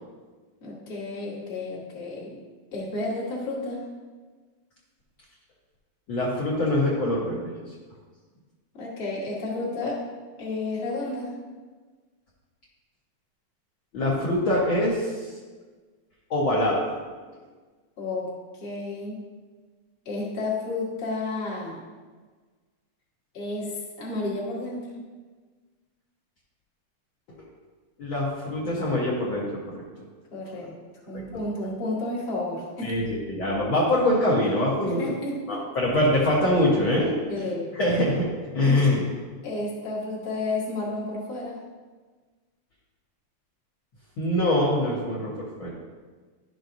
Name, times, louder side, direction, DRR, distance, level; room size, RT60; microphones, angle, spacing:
voice 1, 0.6-2.3 2.7-3.8 8.7-10.0 10.4-11.3 18.0-19.2 20.0-21.8 23.3-24.8 30.3-30.7 31.1-32.9 34.8-35.6 37.3-37.7 39.4-41.6, left 2 dB, 40° left, -5 dB, 0.8 m, -31 dB
voice 2, 6.1-7.5 13.9-15.3 16.3-16.8 28.0-29.5 32.8-35.2 35.5-37.1 37.7-38.3 38.5-39.1 44.2-45.3 45.6-45.7, left 1 dB, 85° left, -6 dB, 1.1 m, -23 dB
11.5 x 6.1 x 2.6 m, 1.4 s
omnidirectional pair, 4.1 m